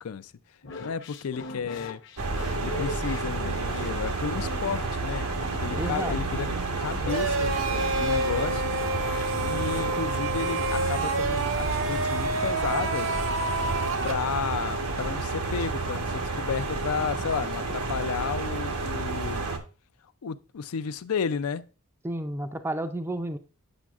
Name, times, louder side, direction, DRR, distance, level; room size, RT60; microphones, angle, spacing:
voice 1, 0.0-0.3 0.8-2.0 2.6-5.3 5.6-6.5 6.8-7.6 8.0-8.8 9.5-13.2 14.0-19.5 20.2-21.6, left 6 dB, 80° left, 0.4 m, -32 dB
sound 1, 0.6-10.4, left 3 dB, 55° left, 0.8 m, -40 dB
sound 2, 2.2-19.6, right 3 dB, 90° right, 1.0 m, -30 dB
voice 2, 5.8-6.2 22.0-23.4, right 1 dB, 10° right, 0.4 m, -31 dB
sound 3, 7.1-14.1, right 2 dB, 60° right, 0.7 m, -29 dB
8.8 x 6.1 x 2.4 m
head